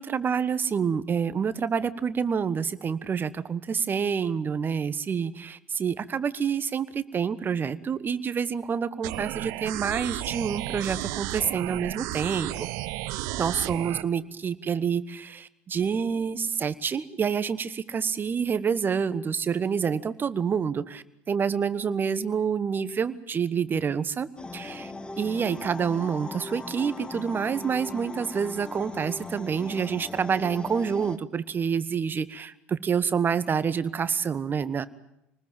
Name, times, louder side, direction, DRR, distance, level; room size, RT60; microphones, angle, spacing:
voice 1, 0.0-12.7 13.4-24.9 25.2-34.9, right 6 dB, 30° right, 15 dB, 1.3 m, -28 dB
sound 1, 9.0-14.0, right 17 dB, 60° right, 0.9 m, -33 dB
sound 2, 24.4-31.2, left 3 dB, 15° left, 1.7 m, -39 dB
26.0 x 20.0 x 7.4 m, 0.85 s
hypercardioid pair, 70°, 7 cm